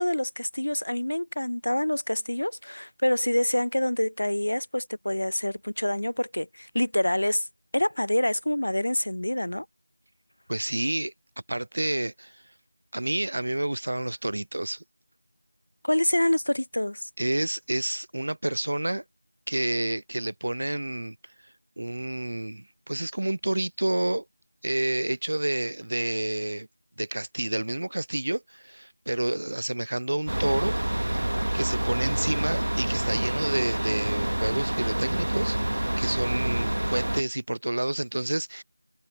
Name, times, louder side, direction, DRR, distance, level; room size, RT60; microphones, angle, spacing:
voice 1, 0.0-7.5 7.7-9.7 15.8-17.1, left 1 dB, 70° left, 0.5 m, -26 dB
voice 2, 10.5-11.1 11.5-12.4 12.9-14.8 17.2-19.0 19.5-21.2 21.8-24.2 24.6-26.7 27.0-30.8 31.5-35.6 36.0-38.6, right 1 dB, 35° right, 0.4 m, -29 dB
sound 1, 30.3-37.2, right 1 dB, 70° right, 1.2 m, -27 dB
figure-of-eight pair, 180°, 0 cm